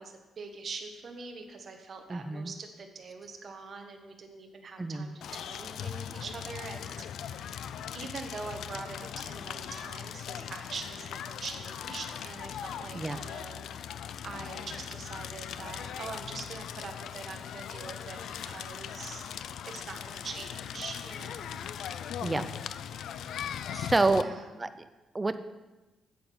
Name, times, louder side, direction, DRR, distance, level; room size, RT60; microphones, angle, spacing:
voice 1, 0.0-7.7 7.9-13.7 14.2-19.3 19.7-21.6 24.1-24.5, right 4 dB, 45° right, 3 dB, 1.1 m, -43 dB
voice 2, 2.1-2.5 4.8-5.1 12.9-13.2 22.2-22.5 23.7-24.3 24.6-24.7 25.1-25.4, right 3 dB, 15° right, 10 dB, 0.4 m, -28 dB
Crackle, 5.2-24.2, left 9 dB, 75° left, 0.4 m, -39 dB
8.7 x 7.8 x 5.5 m, 1.1 s
cardioid pair, 140°, 0 cm